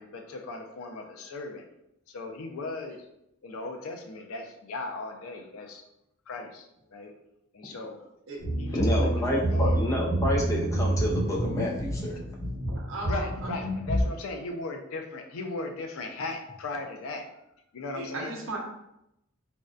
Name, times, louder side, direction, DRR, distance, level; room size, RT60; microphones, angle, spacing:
voice 1, 0.0-1.7 2.1-3.1 3.4-5.8 6.3-7.1 7.5-8.0 8.6-9.8 13.1-17.3 17.7-18.4, left 2 dB, 90° left, 4 dB, 0.4 m, -37 dB
sound 1, 8.4-14.0, right 1 dB, 25° right, 0.9 m, -28 dB
voice 2, 8.7-12.2, left 1 dB, 15° left, -3 dB, 0.4 m, -29 dB
voice 3, 12.7-13.6 17.9-18.6, right 2 dB, 70° right, -2 dB, 0.6 m, -37 dB
2.6 x 2.1 x 2.3 m, 0.83 s
head